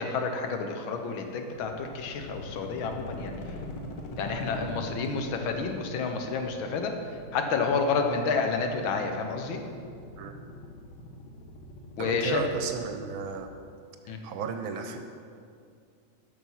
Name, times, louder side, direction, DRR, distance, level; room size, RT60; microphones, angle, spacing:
voice 1, 0.0-3.6 4.2-6.9 7.3-9.6 12.0-12.4 14.1-14.2, left 4 dB, 80° left, 5 dB, 1.7 m, -30 dB
sound 1, 1.6-13.3, left 2 dB, 60° left, 1.6 m, -43 dB
voice 2, 12.0-13.5 14.0-15.0, right 6 dB, 80° right, 6 dB, 1.4 m, -34 dB
12.5 x 6.1 x 5.6 m, 2.4 s
omnidirectional pair, 2.2 m